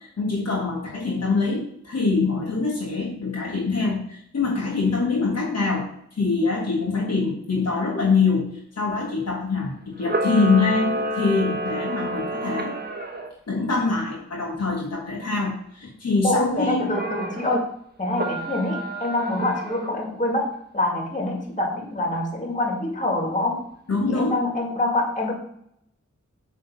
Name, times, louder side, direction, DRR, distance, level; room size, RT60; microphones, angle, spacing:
voice 1, 0.0-12.8 13.5-17.0 23.9-24.4, left 4 dB, 60° left, -2 dB, 1.3 m, -24 dB
Camera, 10.0-13.3 16.9-17.6 18.1-19.9, right 1 dB, 35° right, 1.0 m, -29 dB
voice 2, 16.2-17.7 18.0-23.6 24.0-25.3, left 2 dB, 25° left, 0 dB, 2.1 m, -25 dB
8.0 x 3.3 x 5.3 m, 0.71 s
wide cardioid pair, 95°, 29 cm